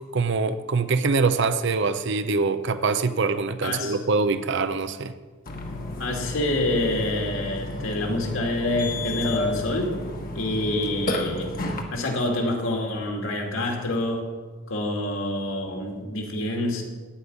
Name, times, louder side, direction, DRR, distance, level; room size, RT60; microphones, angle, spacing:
voice 1, 0.1-5.1, right 4 dB, 55° right, 0.6 m, -24 dB
voice 2, 3.6-4.0 6.0-9.9 10.3-11.5 11.9-14.3 14.7-16.8, left 1 dB, 70° left, 2.5 m, -27 dB
Burping eructation, 5.5-11.8, left 2 dB, 40° left, 1.3 m, -31 dB
15.0 x 5.3 x 9.5 m
head